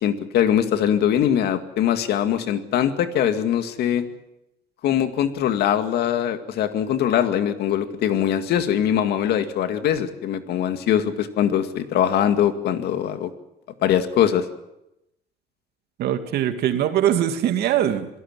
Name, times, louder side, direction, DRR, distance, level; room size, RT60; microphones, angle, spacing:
voice 1, 0.0-4.1 4.8-13.3 13.8-14.4, left 10 dB, 75° left, 9 dB, 2.1 m, -22 dB
voice 2, 16.0-18.1, right 10 dB, 75° right, 8 dB, 2.3 m, -22 dB
27.0 x 18.0 x 7.5 m, 0.88 s
cardioid pair, 110°, 17 cm